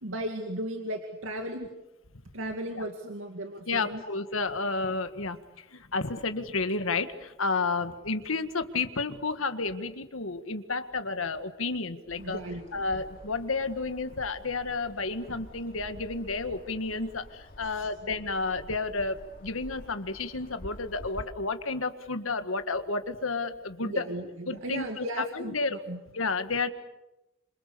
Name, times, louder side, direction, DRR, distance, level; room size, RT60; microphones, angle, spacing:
voice 1, 0.0-1.7 2.3-4.1 12.2-13.0 17.6-17.9 23.8-26.0, right 1 dB, 75° right, 4 dB, 2.3 m, -36 dB
voice 2, 3.7-5.4 5.7-12.4 12.7-24.0 24.5-25.8 26.1-26.7, left 3 dB, 80° left, 9 dB, 1.8 m, -31 dB
sound 1, 12.1-21.3, equal, 45° left, 3.0 m, -48 dB
27.0 x 27.0 x 6.9 m, 0.96 s
head